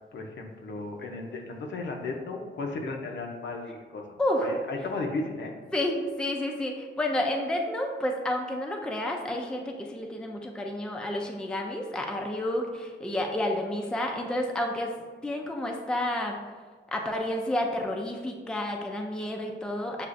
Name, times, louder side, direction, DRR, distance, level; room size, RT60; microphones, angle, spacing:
voice 1, 0.1-4.1 4.4-5.5, left 3 dB, 70° left, 2 dB, 0.6 m, -35 dB
voice 2, 5.7-14.9 15.2-16.4 16.9-20.1, left 1 dB, 5° left, 2 dB, 0.3 m, -30 dB
6.5 x 2.4 x 2.5 m, 1.5 s
wide cardioid pair, 135°, 19 cm